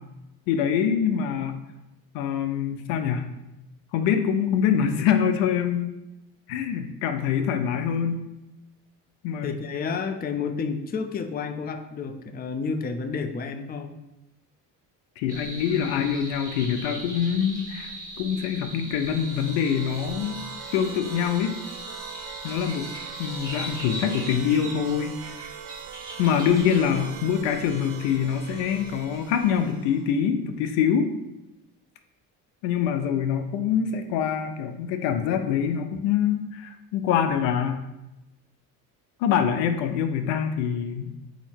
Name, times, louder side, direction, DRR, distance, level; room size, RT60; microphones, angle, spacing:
voice 1, 0.5-1.6 2.1-3.3 3.9-5.9 6.5-8.2 9.2-9.5 15.2-20.4 20.7-21.6 22.4-22.9 23.2-25.1 26.2-31.1 32.6-37.8 39.2-41.1, left 8 dB, 75° left, 8 dB, 0.6 m, -25 dB
voice 2, 9.4-14.0, left 5 dB, 20° left, 7 dB, 0.5 m, -30 dB
sound 1, 15.3-29.7, right 1 dB, 10° right, 1.5 m, -40 dB
sound 2, 18.9-30.2, right 9 dB, 80° right, 0.6 m, -42 dB
4.1 x 2.8 x 4.3 m, 0.95 s
hypercardioid pair, 65°, 44 cm